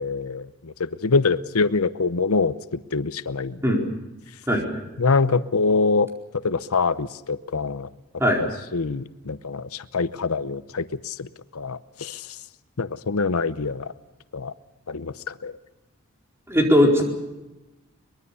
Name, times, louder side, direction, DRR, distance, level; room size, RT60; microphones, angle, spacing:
voice 1, 0.0-3.9 5.0-6.1 6.4-7.9 8.4-12.4 12.8-13.9 14.3-14.5 14.9-15.5, left 4 dB, 90° left, 14 dB, 0.9 m, -25 dB
voice 2, 4.5-4.8 8.2-8.4 16.5-17.0, equal, 10° right, 1 dB, 4.4 m, -19 dB
23.5 x 22.0 x 7.0 m, 1.0 s
head